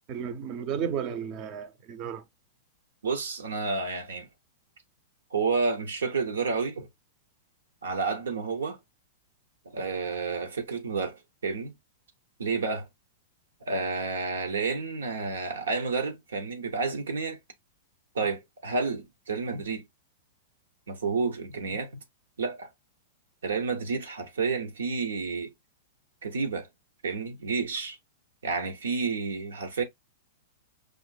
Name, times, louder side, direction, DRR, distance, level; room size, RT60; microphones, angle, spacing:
voice 1, 0.1-2.2, right 8 dB, 40° right, 0.6 m, -33 dB
voice 2, 3.0-4.3 5.3-6.9 7.8-8.8 9.7-11.7 12.4-12.9 13.7-17.4 18.1-19.9 20.9-22.0 22.4-22.7 23.4-25.5 26.2-26.7 27.0-28.0 28.4-29.8, right 4 dB, 90° right, 0.9 m, -30 dB
5.0 x 2.5 x 2.2 m
hypercardioid pair, 125°, 0 cm